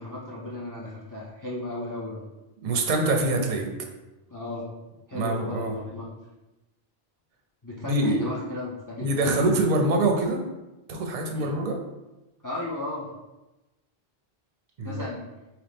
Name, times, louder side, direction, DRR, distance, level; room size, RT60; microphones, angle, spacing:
voice 1, 0.0-2.2 4.3-4.7 5.1-6.1 7.6-9.5 11.3-11.5 12.4-13.1 14.8-15.2, left 2 dB, 25° left, -5 dB, 0.5 m, -35 dB
voice 2, 2.6-3.7 5.1-5.8 7.9-8.2 9.0-10.4 10.9-11.8 14.8-15.0, right 2 dB, 55° right, 3 dB, 0.7 m, -24 dB
3.9 x 3.0 x 3.4 m, 1.0 s
omnidirectional pair, 1.0 m